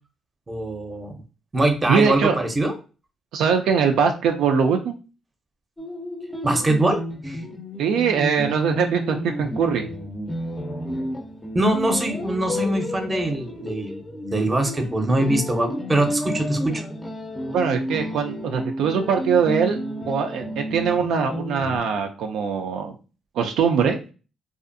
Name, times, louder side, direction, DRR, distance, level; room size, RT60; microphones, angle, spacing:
voice 1, 0.5-1.2 1.5-2.7 6.4-7.4 11.5-16.8, right 2 dB, 25° right, 5 dB, 0.6 m, -23 dB
voice 2, 1.9-2.4 3.3-5.0 7.8-9.9 17.5-19.8 20.1-23.0 23.4-24.0, right 6 dB, 85° right, 3 dB, 0.4 m, -22 dB
sound 1, 5.8-21.8, equal, 15° left, 0.5 m, -31 dB
2.5 x 2.4 x 2.5 m, 0.33 s
cardioid pair, 90°, 0 cm